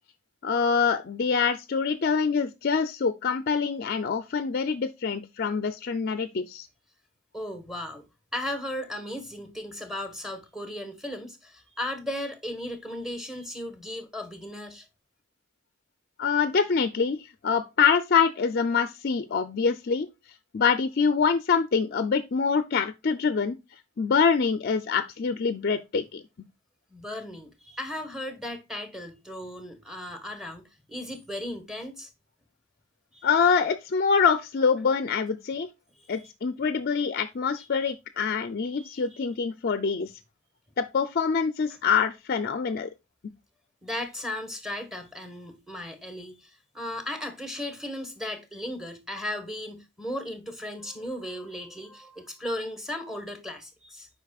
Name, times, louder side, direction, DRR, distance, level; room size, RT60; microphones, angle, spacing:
voice 1, 0.4-6.7 16.2-20.1 20.5-23.6 24.0-26.2 33.2-35.7 36.1-40.1 40.8-42.9, left 5 dB, 50° left, 0.5 m, -25 dB
voice 2, 7.3-8.0 8.3-14.9 26.9-32.1 33.1-33.3 36.0-36.3 38.7-39.2 43.8-54.1, left 1 dB, ahead, 1.4 m, -36 dB
8.2 x 5.2 x 2.3 m
head